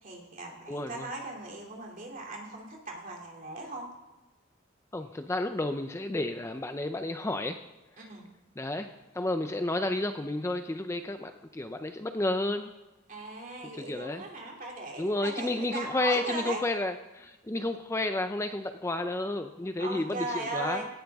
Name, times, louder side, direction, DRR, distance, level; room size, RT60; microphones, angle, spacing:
voice 1, 0.0-3.9 8.0-8.3 13.1-16.6 19.8-20.9, right 2 dB, 40° right, 0 dB, 2.7 m, -38 dB
voice 2, 0.7-1.1 4.9-7.6 8.0-8.1 8.6-12.7 13.7-14.2 15.0-20.8, left 2 dB, 15° left, 7 dB, 0.5 m, -31 dB
17.5 x 14.0 x 3.5 m, 1.1 s
head